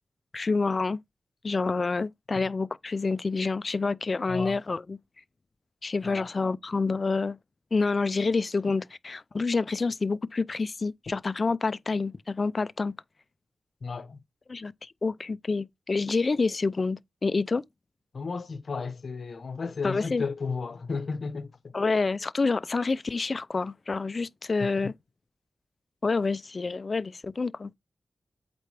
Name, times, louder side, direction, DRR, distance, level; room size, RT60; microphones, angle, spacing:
voice 1, 0.3-1.0 1.4-5.0 5.8-7.4 7.7-12.9 14.5-17.6 19.8-20.2 21.7-24.9 26.0-27.7, left 4 dB, 45° left, 0.4 m, -28 dB
voice 2, 13.8-14.2 18.1-21.7 24.6-24.7, left 4 dB, 60° left, 1.0 m, -34 dB
8.2 x 4.3 x 3.3 m
wide cardioid pair, 105°, 0 cm